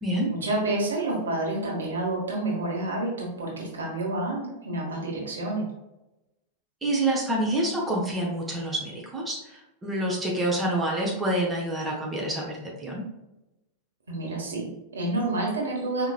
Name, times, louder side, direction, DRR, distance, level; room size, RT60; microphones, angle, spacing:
voice 1, 0.3-5.6 14.1-16.1, right 2 dB, 70° right, -2 dB, 1.3 m, -29 dB
voice 2, 6.8-13.0, right 1 dB, 15° right, -3 dB, 0.9 m, -27 dB
4.8 x 2.9 x 2.4 m, 0.96 s
figure-of-eight pair, 90°, 0 cm